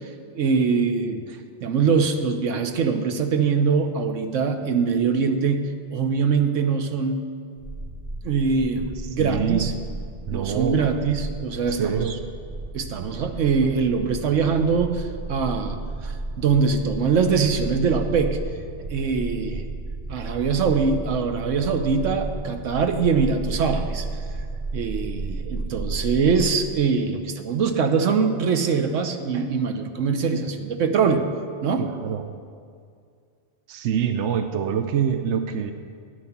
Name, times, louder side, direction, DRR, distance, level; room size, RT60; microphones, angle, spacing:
voice 1, 0.4-7.2 8.2-9.7 10.3-12.1 12.7-18.4 18.9-19.7 20.1-24.1 24.7-31.3 31.6-31.9, right 5 dB, 90° right, 7 dB, 1.2 m, -23 dB
sound 1, 7.6-26.4, right 3 dB, 35° right, 0.9 m, -33 dB
voice 2, 9.0-9.6 10.3-10.8 11.7-12.2 31.8-32.3 33.7-35.7, right 8 dB, 75° right, 8 dB, 1.0 m, -25 dB
13.5 x 9.2 x 5.8 m, 2.2 s
omnidirectional pair, 1.3 m